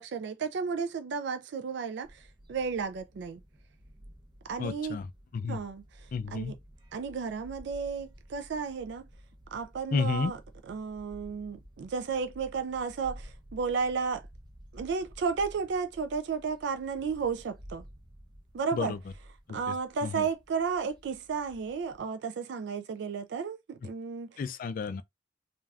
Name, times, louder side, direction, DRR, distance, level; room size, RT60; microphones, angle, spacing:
voice 1, 0.0-2.1 2.5-3.4 4.5-5.0 5.5-5.8 6.3-6.5 6.9-9.1 9.5-10.4 10.7-14.2 14.7-17.8 18.5-18.9 19.5-24.4, right 5 dB, 65° right, 0.3 m, -33 dB
sound 1, 2.0-22.0, equal, 25° right, 0.6 m, -53 dB
voice 2, 4.6-5.6 6.1-6.6 9.9-10.3 18.7-19.0 19.5-19.8 20.0-20.3 24.4-25.0, left 5 dB, 45° left, 0.3 m, -32 dB
3.3 x 2.4 x 2.3 m
head